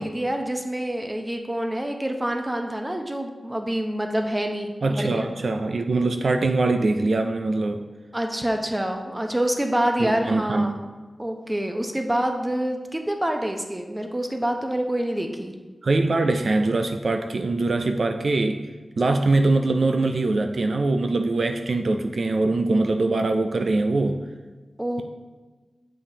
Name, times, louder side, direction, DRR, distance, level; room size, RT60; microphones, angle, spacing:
voice 1, 0.0-5.3 8.1-10.7 11.2-15.6 24.8-25.0, right 1 dB, 15° right, 4 dB, 0.7 m, -26 dB
voice 2, 4.8-7.8 10.0-10.8 15.8-18.7 19.0-24.2, right 2 dB, 70° right, 6 dB, 0.3 m, -23 dB
7.3 x 5.0 x 2.8 m, 1.3 s
cardioid pair, 55°, 0 cm